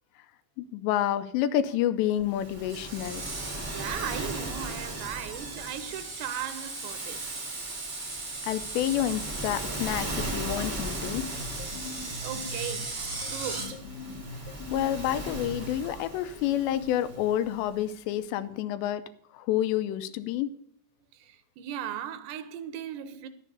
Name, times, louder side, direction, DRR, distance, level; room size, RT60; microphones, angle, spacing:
voice 1, 0.6-3.2 8.4-11.3 14.7-19.0 19.3-20.5, left 11 dB, 85° left, 2.9 m, -29 dB
Waves surf, 2.2-17.7, right 1 dB, 30° right, 0.8 m, -39 dB
Screech, 2.7-13.7, right 3 dB, 65° right, 0.6 m, -38 dB
voice 2, 3.7-7.3 11.8-11.9 12.2-13.9 21.1-23.3, right 10 dB, 80° right, 2.8 m, -37 dB
sound 1, 10.3-17.4, left 1 dB, 65° left, 2.6 m, -43 dB
12.0 x 7.3 x 6.8 m
omnidirectional pair, 5.0 m